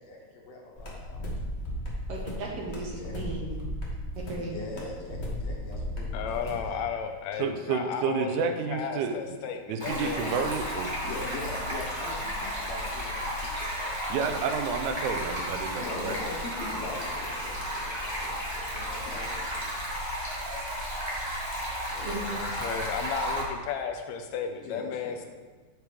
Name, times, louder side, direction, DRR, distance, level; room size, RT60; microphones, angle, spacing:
voice 1, 0.5-1.5 2.5-2.6 3.0-3.3 4.5-6.7 11.0-14.3 15.8-19.7 22.0-22.2 24.6-25.2, left 3 dB, 60° left, -2 dB, 2.2 m, -42 dB
sound 1, 0.8-6.7, equal, 45° left, 0.8 m, -35 dB
voice 2, 2.1-3.6 4.3-4.6 22.1-22.4, right 2 dB, 65° right, -1 dB, 1.7 m, -36 dB
voice 3, 6.1-10.3 21.9-25.3, left 6 dB, 80° left, 5 dB, 1.6 m, -34 dB
voice 4, 7.4-9.2 9.7-10.9 14.1-16.1, right 6 dB, 80° right, 6 dB, 2.1 m, -30 dB
Stream, 9.8-23.4, equal, 25° right, 0.5 m, -33 dB
8.4 x 4.7 x 5.0 m, 1.4 s
omnidirectional pair, 3.5 m